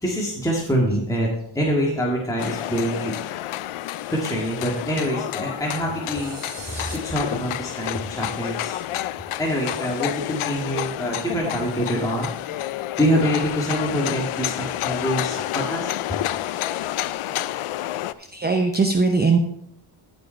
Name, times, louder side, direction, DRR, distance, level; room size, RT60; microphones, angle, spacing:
voice 1, 0.0-1.3 1.6-3.1 4.1-8.8 9.4-14.5 14.8-15.9, equal, 5° left, -4 dB, 1.8 m, -25 dB
sound 1, 2.4-18.1, left 13 dB, 80° left, 0.5 m, -29 dB
sound 2, 6.0-7.0, right 5 dB, 50° right, 2.0 m, -39 dB
voice 2, 18.3-19.4, right 4 dB, 20° right, 5 dB, 0.7 m, -19 dB
14.5 x 5.3 x 4.4 m, 0.75 s
wide cardioid pair, 110°, 50 cm